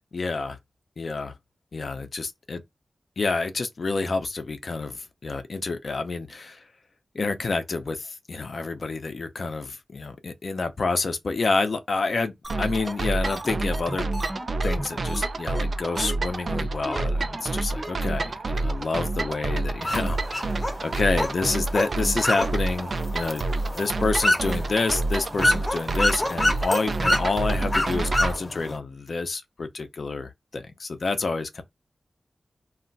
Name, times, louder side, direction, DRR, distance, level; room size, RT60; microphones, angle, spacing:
voice 1, 0.1-0.6 1.0-1.3 1.7-2.6 3.2-6.6 7.1-14.1 14.6-20.5 20.8-23.4 23.8-31.6, left 3 dB, 70° left, 0.6 m, -28 dB
sound 1, 12.4-12.5 12.8-12.9 13.2-15.3 15.5-15.7 16.0-16.2 16.5-16.6 16.9-17.0 17.3-17.4 17.8-17.9 18.2-18.3 18.6-18.7, right 1 dB, 20° right, 0.7 m, -35 dB
sound 2, 12.5-28.4, right 2 dB, 65° right, 0.3 m, -28 dB
sound 3, 19.8-28.8, left 1 dB, 30° left, 0.8 m, -28 dB
2.4 x 2.2 x 3.8 m
cardioid pair, 45°, 0 cm